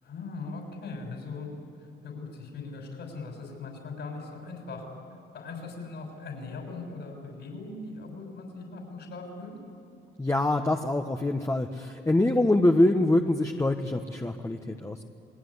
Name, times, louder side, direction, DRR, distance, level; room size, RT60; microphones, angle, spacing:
voice 1, 0.0-1.5 2.0-4.8 5.3-9.6, left 3 dB, 65° left, 1 dB, 6.2 m, -40 dB
voice 2, 10.2-15.0, left 1 dB, 15° left, 3 dB, 1.3 m, -24 dB
28.0 x 20.0 x 9.8 m, 2.5 s
cardioid pair, 90°, 20 cm